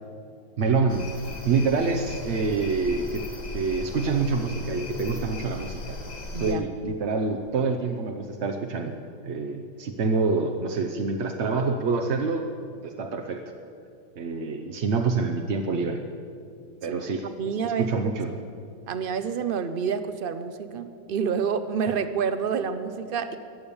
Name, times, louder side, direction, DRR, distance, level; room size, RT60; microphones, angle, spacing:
voice 1, 0.6-1.1 1.4-3.3 3.5-6.0 6.4-9.0 9.2-12.5 12.8-13.4 14.2-16.0 16.8-17.2 17.8-18.3, right 4 dB, 50° right, 4 dB, 0.9 m, -26 dB
sound 1, 0.9-6.5, left 2 dB, 25° left, 1.1 m, -38 dB
voice 2, 6.3-6.6 16.9-17.0 17.4-18.1 18.9-23.4, right 6 dB, 70° right, 10 dB, 0.5 m, -28 dB
22.0 x 8.6 x 7.0 m, 2.4 s
omnidirectional pair, 1.9 m